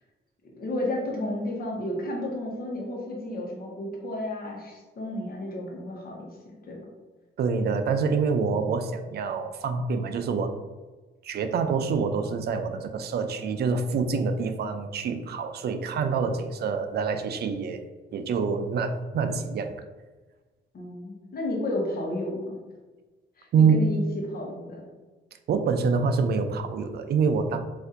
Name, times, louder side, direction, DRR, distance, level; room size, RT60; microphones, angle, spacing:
voice 1, 0.6-6.8 20.7-22.6 23.4-24.8, left 1 dB, 50° left, -1 dB, 1.0 m, -32 dB
voice 2, 7.4-10.5 11.2-17.8 18.1-19.8 23.5-23.8 25.5-27.6, right 5 dB, 55° right, 8 dB, 0.4 m, -26 dB
4.1 x 2.6 x 2.6 m, 1.3 s
cardioid pair, 90°, 20 cm